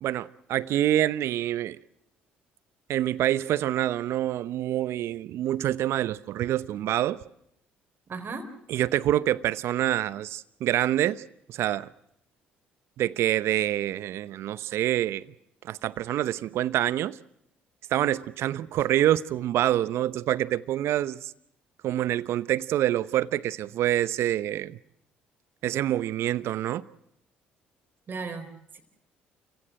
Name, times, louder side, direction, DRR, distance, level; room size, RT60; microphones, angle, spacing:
voice 1, 0.0-1.8 2.9-7.2 8.7-11.2 11.5-11.9 13.0-15.3 15.6-17.2 17.9-21.3 21.8-24.8 25.6-26.8, right 12 dB, 65° right, 0.9 m, -26 dB
voice 2, 8.1-8.5 28.1-28.8, right 4 dB, 45° right, 4.2 m, -36 dB
29.0 x 16.5 x 7.7 m
hypercardioid pair, 55°, 5 cm